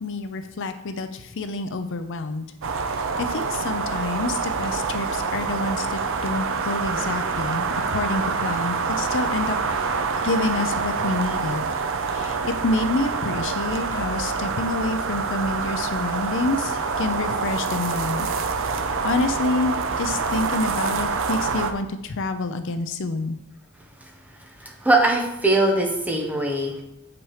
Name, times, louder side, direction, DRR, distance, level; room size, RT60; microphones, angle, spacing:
voice 1, 0.0-2.5 3.3-9.9 10.2-11.7 12.1-18.3 19.0-23.4, left 3 dB, 60° left, 9 dB, 0.6 m, -28 dB
sound 1, 2.6-21.7, right 5 dB, 65° right, 0.7 m, -26 dB
voice 2, 24.6-26.8, right 2 dB, 5° right, 1 dB, 1.3 m, -21 dB
7.7 x 5.9 x 4.9 m, 0.88 s
head